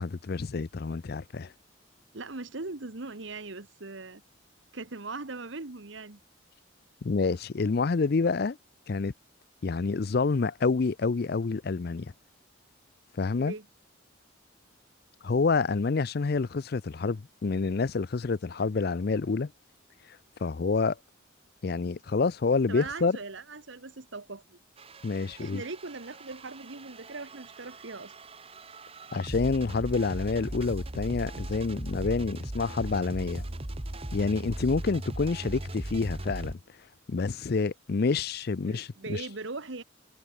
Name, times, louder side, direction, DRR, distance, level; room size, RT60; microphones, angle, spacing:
voice 1, 0.0-1.5 7.0-8.6 8.9-9.1 9.6-12.1 13.2-13.5 15.2-19.5 20.4-21.0 21.6-23.2 25.0-25.6 29.1-33.4 34.1-36.6 37.1-39.2, left 4 dB, 50° left, 0.5 m, -28 dB
voice 2, 2.1-4.2 4.7-6.2 13.4-13.6 22.7-24.6 25.4-28.1 38.6-39.8, right 3 dB, 65° right, 1.3 m, -40 dB
sound 1, 24.8-36.5, right 1 dB, 30° right, 1.4 m, -38 dB
head